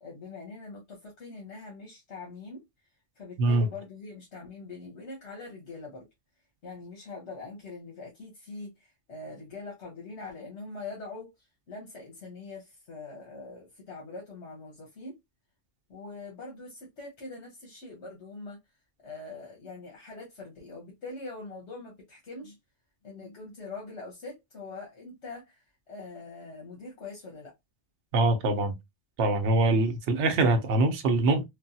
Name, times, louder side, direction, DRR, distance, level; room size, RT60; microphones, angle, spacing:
voice 1, 0.0-2.6 3.2-6.0 6.6-11.3 11.7-15.2 15.9-18.6 19.0-22.5 23.0-27.5, left 3 dB, 80° left, 1.3 m, -43 dB
voice 2, 28.1-28.7 29.2-31.5, right 2 dB, 90° right, 1.0 m, -23 dB
3.2 x 2.2 x 2.6 m
omnidirectional pair, 1.1 m